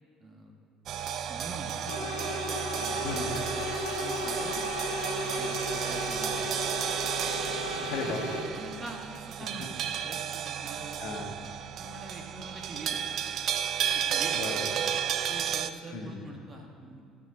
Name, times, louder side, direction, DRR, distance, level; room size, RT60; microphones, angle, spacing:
voice 1, 0.0-0.5 1.0-2.0 2.7-3.1 3.5-4.7 5.2-6.7 7.8-10.9 11.8-13.0 13.9-14.4 15.3-17.0, right 2 dB, 30° right, 1 dB, 2.0 m, -45 dB
sound 1, 0.9-15.7, right 9 dB, 55° right, 0.4 m, -33 dB
sound 2, 1.9-8.4, left 2 dB, 85° left, 1.7 m, -35 dB
voice 2, 3.0-3.4 7.9-8.5 9.6-9.7 11.0-11.4 14.3-14.8 15.9-16.3, left 3 dB, 60° left, 1 dB, 1.7 m, -36 dB
16.0 x 5.6 x 5.1 m, 2.4 s
hypercardioid pair, 75°, 0 cm